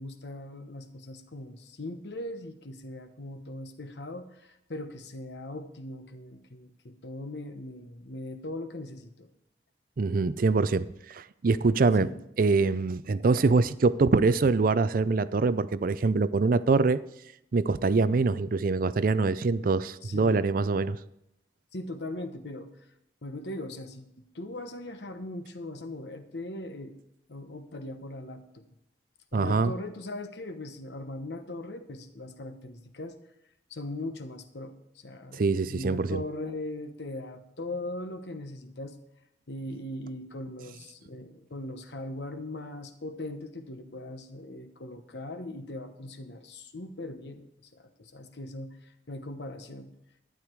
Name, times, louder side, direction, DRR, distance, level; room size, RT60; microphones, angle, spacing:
voice 1, 0.0-9.3 12.0-12.2 20.0-20.5 21.7-22.7 23.2-27.0 27.3-28.6 29.3-33.2 33.7-39.0 39.5-49.9, left 1 dB, 70° left, 1.1 m, -40 dB
voice 2, 10.0-12.1 12.4-17.0 17.5-21.0 29.3-29.7 35.3-36.2, right 3 dB, 50° right, 0.4 m, -24 dB
12.0 x 9.8 x 4.6 m
head